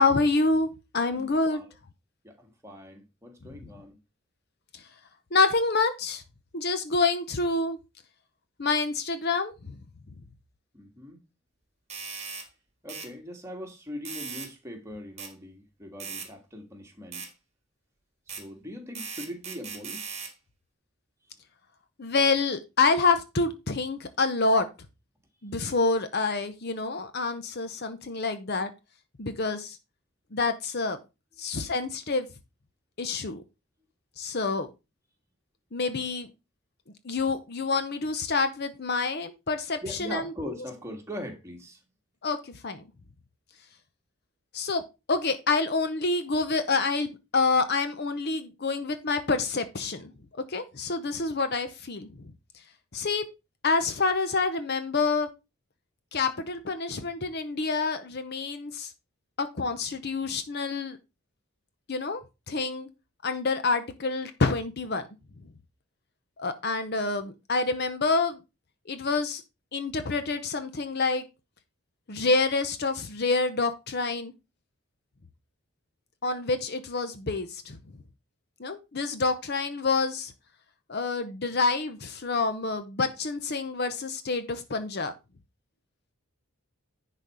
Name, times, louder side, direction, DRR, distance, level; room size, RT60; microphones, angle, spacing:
voice 1, 0.0-1.6 4.7-4.8 5.3-6.2 6.5-7.8 8.6-9.8 22.0-24.7 25.4-28.7 29.2-29.8 30.3-31.0 31.4-32.3 33.0-33.4 34.2-34.7 35.7-36.3 37.0-40.2 42.2-42.8 44.5-44.8 45.1-50.1 50.5-52.3 52.9-53.2 53.6-55.3 56.1-58.9 59.4-61.0 61.9-62.2 62.5-62.9 63.2-65.0 66.4-68.4 68.9-69.4 69.7-71.2 72.1-74.3 76.2-77.8 78.6-80.3 80.9-85.1, left 3 dB, 45° left, 0.7 m, -27 dB
voice 2, 1.1-1.7 2.2-4.0 10.7-11.2 12.8-17.3 18.3-20.2 21.2-21.3 39.8-41.8, equal, 10° right, 1.7 m, -41 dB
sound 1, 11.9-12.5 12.9-13.1 14.1-14.5 15.2-15.3 16.0-16.3 17.1-17.3 18.3-18.4 19.0-20.3, right 6 dB, 30° right, 1.5 m, -38 dB
10.5 x 4.2 x 4.8 m
head